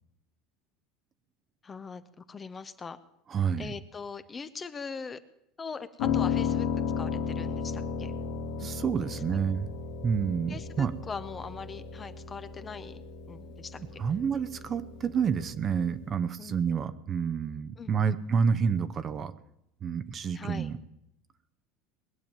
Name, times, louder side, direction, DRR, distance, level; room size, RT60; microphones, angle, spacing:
voice 1, 1.6-3.0 3.6-5.2 5.6-6.7 7.0-8.1 9.0-9.4 10.5-13.0 13.3-14.0 16.4-16.6 17.8-18.2 20.3-20.7, left 5 dB, 20° left, 12 dB, 0.7 m, -41 dB
voice 2, 3.3-3.7 8.6-9.7 10.0-10.9 14.0-19.3 19.8-20.8, right 6 dB, 30° right, 11 dB, 0.8 m, -29 dB
Piano, 6.0-16.1, left 6 dB, 75° left, 2.2 m, -34 dB
20.5 x 7.1 x 9.0 m, 0.80 s
supercardioid pair, 145°, 0 cm